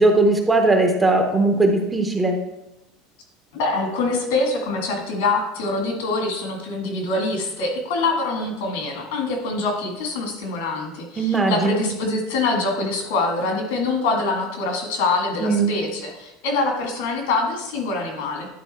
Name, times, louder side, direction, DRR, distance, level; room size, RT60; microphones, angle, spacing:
voice 1, 0.0-2.4 11.2-11.8 15.4-15.7, right 2 dB, 10° right, 4 dB, 0.7 m, -19 dB
voice 2, 3.5-18.5, left 3 dB, 85° left, 2 dB, 2.0 m, -24 dB
10.5 x 3.9 x 4.2 m, 0.95 s
cardioid pair, 170°, 0 cm